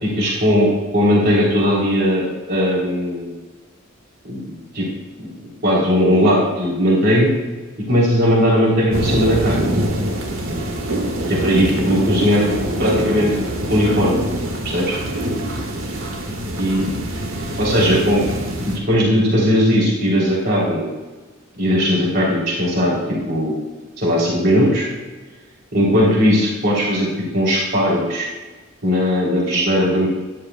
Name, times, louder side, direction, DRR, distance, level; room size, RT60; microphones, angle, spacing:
voice 1, 0.0-3.3 4.3-4.4 4.7-4.8 5.2-5.3 5.6-7.3 7.9-9.7 11.3-13.3 13.7-14.2 14.6-14.8 16.6-16.9 17.6-18.2 18.9-20.9 21.6-23.5 24.0-24.9 25.7-27.1 27.3-28.3 28.8-30.1, equal, 50° right, -5 dB, 3.4 m, -18 dB
sound 1, 8.9-18.8, right 1 dB, 75° right, 1.7 m, -24 dB
13.0 x 11.5 x 2.3 m, 1.2 s
head